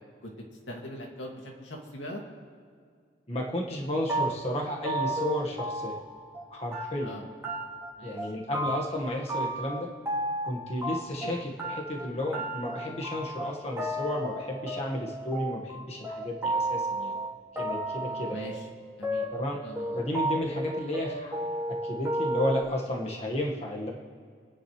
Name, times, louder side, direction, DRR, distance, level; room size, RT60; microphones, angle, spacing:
voice 1, 0.2-2.2 7.0-7.2 8.0-8.2 11.2-11.5 18.0-18.7 19.0-19.3 19.6-20.0, equal, 85° left, -1 dB, 2.3 m, -41 dB
voice 2, 3.3-6.0 6.5-7.1 8.0-9.9 10.5-17.1 17.5-18.4 19.3-19.6 19.9-21.3 21.7-23.9, left 1 dB, 35° left, -2 dB, 1.6 m, -32 dB
sound 1, 4.1-6.4 6.7-7.2 7.4-7.9 8.2-9.0 9.3-11.3 11.6-22.6, right 1 dB, 15° right, 2.2 m, -32 dB
28.5 x 10.0 x 3.3 m, 2.1 s
head